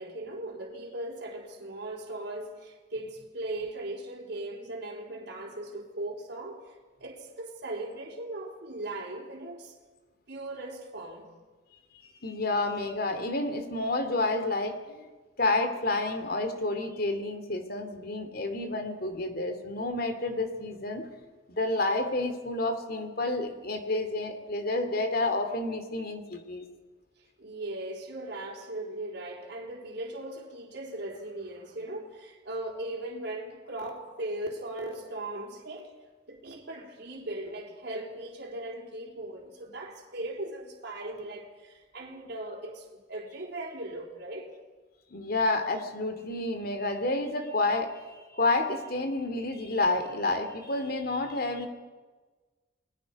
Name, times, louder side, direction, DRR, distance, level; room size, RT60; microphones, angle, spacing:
voice 1, 0.0-9.8 10.3-11.3 27.4-35.9 36.3-44.5, right 1 dB, 60° right, 3.8 m, -38 dB
voice 2, 12.0-15.1 15.4-21.1 21.5-26.7 45.1-51.7, left 2 dB, 50° left, 2.5 m, -30 dB
30.0 x 20.5 x 5.3 m
head